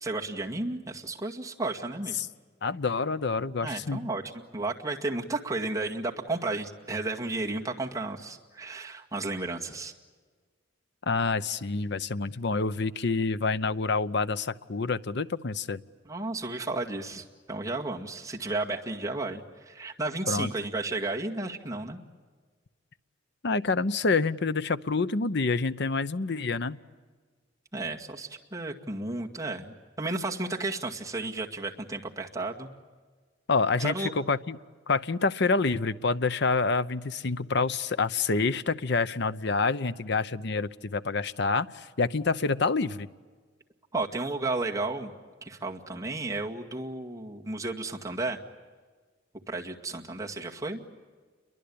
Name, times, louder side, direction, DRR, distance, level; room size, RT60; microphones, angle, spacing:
voice 1, 0.0-2.2 3.6-9.9 16.0-22.0 27.7-32.7 33.8-34.1 43.9-45.1 45.4-48.4 49.5-50.8, right 2 dB, 20° right, 0 dB, 2.0 m, -33 dB
voice 2, 2.6-4.0 11.1-15.8 20.3-20.5 23.4-26.8 33.5-34.6 34.9-43.1, left 4 dB, 65° left, 14 dB, 0.8 m, -27 dB
29.5 x 23.5 x 8.7 m, 1.5 s
head